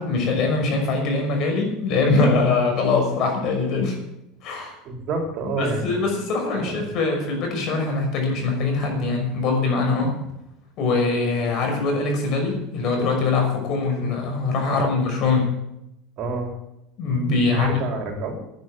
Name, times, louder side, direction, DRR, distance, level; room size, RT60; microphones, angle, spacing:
voice 1, 0.0-4.0 4.4-4.8 5.6-10.2 10.8-15.6 17.0-17.8, left 3 dB, 50° left, 3 dB, 5.9 m, -22 dB
voice 2, 4.6-6.2 6.5-6.9 14.7-15.0 16.2-16.5 17.5-18.4, right 2 dB, 50° right, 2 dB, 4.3 m, -29 dB
10.5 x 10.5 x 9.2 m, 0.85 s
supercardioid pair, 115°, 0 cm